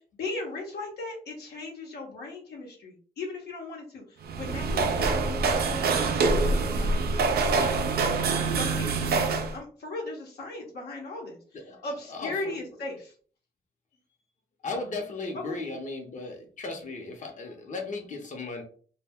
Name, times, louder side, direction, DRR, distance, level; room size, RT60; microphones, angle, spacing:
voice 1, 0.2-7.9 8.5-11.4 11.8-13.1 15.4-15.6, left 3 dB, 80° left, -1 dB, 0.9 m, -38 dB
sound 1, 4.2-9.6, right 4 dB, 75° right, 0.4 m, -25 dB
voice 2, 11.5-12.6 14.6-18.6, left 3 dB, 50° left, 1 dB, 0.8 m, -36 dB
2.2 x 2.1 x 3.5 m, 0.43 s
supercardioid pair, 50°, 16 cm